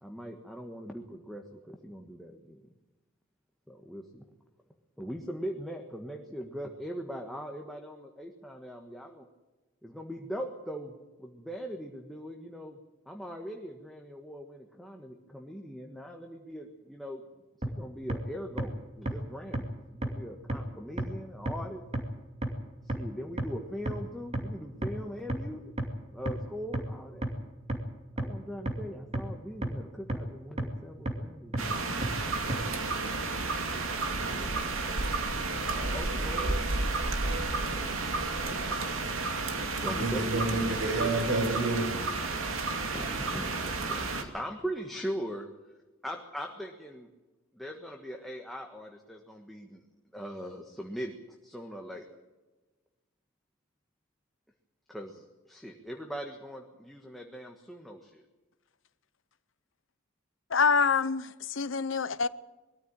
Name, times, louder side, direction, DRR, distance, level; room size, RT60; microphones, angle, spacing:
voice 1, 0.0-2.7 3.7-4.3 5.0-9.3 9.8-12.8 13.1-17.2 17.6-21.8 22.8-25.7 26.1-27.3 28.2-31.9 34.0-34.7 35.9-36.6 38.5-39.0 39.7-40.3 42.9-45.5 46.0-47.1 47.5-49.8 50.1-51.2 51.4-52.1 54.9-58.2, equal, ahead, 1.4 m, -41 dB
sound 1, 17.6-17.7 18.1-18.2 18.6-18.7 19.1-19.2 19.5-19.6 20.0-20.1 20.5-20.6 21.0-21.1 21.5-21.6 21.9-22.0 22.4-22.5 22.9-23.0 23.4-23.5 23.9-24.0 24.3-24.4 24.8-24.9 25.3-25.4 25.8-25.9 26.3-26.4 26.7-26.8 27.2-27.3 27.7-27.8 28.2-28.3 28.7-28.8 29.1-29.2 29.6-29.7 30.1-30.2 30.6-30.7 31.1-31.2 31.5-31.6 32.0-32.1 32.5-32.6, right 1 dB, 30° right, 2.6 m, -29 dB
sound 2, 31.6-44.2, right 3 dB, 85° right, 2.6 m, -31 dB
voice 2, 39.8-41.9, right 2 dB, 55° right, 6.0 m, -29 dB
voice 3, 60.5-62.3, left 5 dB, 70° left, 0.8 m, -26 dB
22.0 x 14.0 x 8.8 m
head